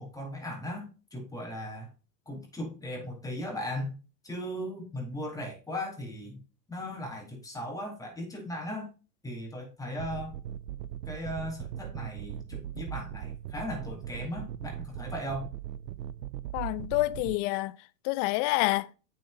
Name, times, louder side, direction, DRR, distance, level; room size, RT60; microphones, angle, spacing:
voice 1, 0.0-1.9 2.3-3.9 4.2-6.4 6.7-8.9 9.2-10.3 11.1-15.5, left 1 dB, 5° left, 4.1 m, -37 dB
sound 1, 10.0-17.4, right 10 dB, 75° right, 0.7 m, -39 dB
voice 2, 16.5-17.8 18.0-18.9, left 20 dB, 35° left, 0.5 m, -27 dB
9.1 x 7.4 x 2.7 m
hypercardioid pair, 105°, 49 cm